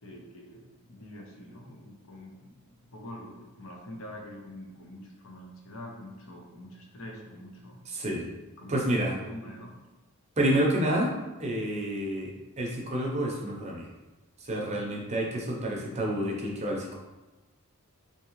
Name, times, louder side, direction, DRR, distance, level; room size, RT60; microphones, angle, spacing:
voice 1, 0.0-2.5 2.8-7.8 8.6-9.7, left 1 dB, 65° left, 0 dB, 0.7 m, -45 dB
voice 2, 7.9-8.3 8.7-9.2 10.4-11.1 11.4-13.9 14.4-17.0, right 1 dB, 30° right, -2 dB, 0.6 m, -29 dB
3.5 x 2.8 x 3.0 m, 1.1 s
head